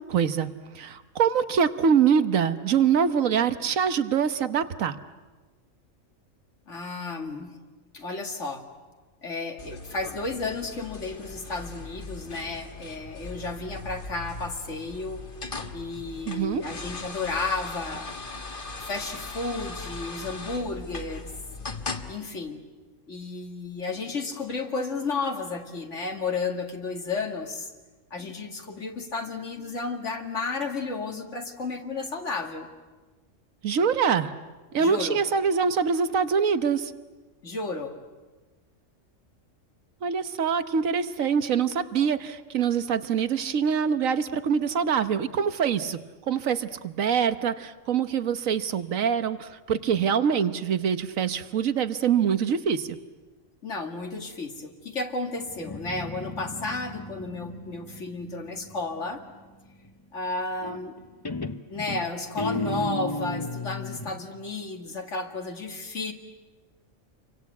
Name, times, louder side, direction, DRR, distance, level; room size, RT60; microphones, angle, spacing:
voice 1, 0.1-0.5 0.8-4.9 16.3-16.6 33.6-34.3 34.7-36.9 40.0-46.0 46.3-52.9, right 7 dB, 85° right, 11 dB, 1.5 m, -24 dB
voice 2, 6.7-7.6 7.9-8.7 9.2-15.2 15.7-18.2 18.8-21.3 22.1-22.6 23.1-27.7 28.1-32.7 34.8-35.2 37.4-38.0 53.6-59.2 60.1-61.0 61.7-66.1, left 3 dB, 65° left, 3 dB, 2.6 m, -32 dB
sound 1, 9.6-22.1, left 3 dB, 40° left, 1.7 m, -39 dB
Guitar, 55.5-59.1 60.6-61.0 61.3-64.2, left 2 dB, 20° left, 0.7 m, -34 dB
29.0 x 24.0 x 8.3 m, 1.3 s
omnidirectional pair, 1.4 m